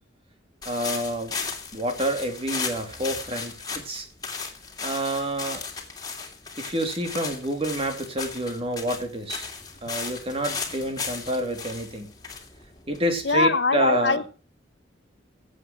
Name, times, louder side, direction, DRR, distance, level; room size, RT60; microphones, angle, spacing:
sound 1, 0.6-13.4, left 5 dB, 20° left, 2.8 m, -36 dB
voice 1, 0.6-1.3 1.7-4.1 4.8-5.7 6.6-9.5 9.8-12.1 12.9-14.2, right 1 dB, 30° right, 6 dB, 2.8 m, -28 dB
voice 2, 13.2-14.3, left 3 dB, 65° left, 13 dB, 1.0 m, -22 dB
15.5 x 8.4 x 6.0 m, 0.35 s
head